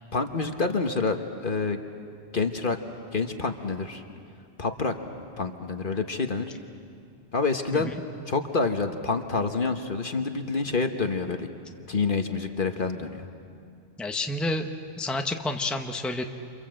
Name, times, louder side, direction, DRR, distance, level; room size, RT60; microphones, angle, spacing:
voice 1, 0.1-1.2 1.4-1.8 2.3-2.8 3.1-4.0 4.6-4.9 5.4-6.5 7.3-7.9 8.3-11.5 11.9-13.3, left 4 dB, 45° left, 6 dB, 1.3 m, -27 dB
voice 2, 14.0-14.7 15.0-16.3, left 2 dB, ahead, 4 dB, 1.0 m, -29 dB
28.5 x 27.0 x 7.7 m, 2.4 s
omnidirectional pair, 1.3 m